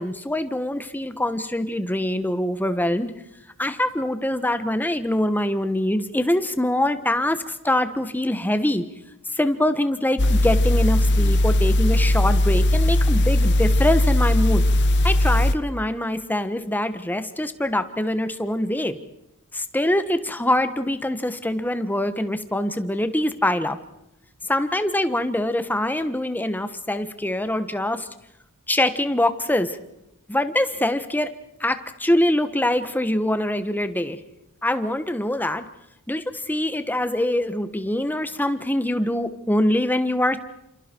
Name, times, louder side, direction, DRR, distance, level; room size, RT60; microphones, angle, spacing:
voice 1, 0.0-3.1 3.6-7.4 7.6-8.8 9.4-14.6 15.0-19.0 19.5-23.8 24.5-28.1 28.7-29.7 30.3-31.3 31.6-34.2 34.6-35.6 36.1-40.4, left 1 dB, 10° left, 10 dB, 1.3 m, -24 dB
sound 1, 10.2-15.6, left 1 dB, 55° left, 1.3 m, -18 dB
29.0 x 28.0 x 4.6 m, 0.85 s
head